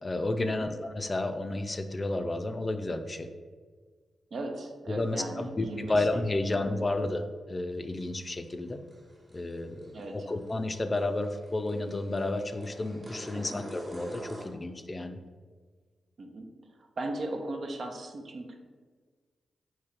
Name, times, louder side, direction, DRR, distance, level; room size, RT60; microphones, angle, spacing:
voice 1, 0.0-3.3 4.9-8.8 9.3-15.2, left 2 dB, 35° left, 7 dB, 0.4 m, -31 dB
voice 2, 4.3-6.2 6.6-6.8 9.9-10.3 13.3-13.6 16.2-16.5 16.8-18.6, right 2 dB, 65° right, 3 dB, 0.6 m, -38 dB
sound 1, 5.0-5.1 5.4-5.5 8.0-14.5, equal, 35° right, 1.0 m, -46 dB
3.7 x 2.8 x 4.4 m, 1.5 s
supercardioid pair, 40°, 0 cm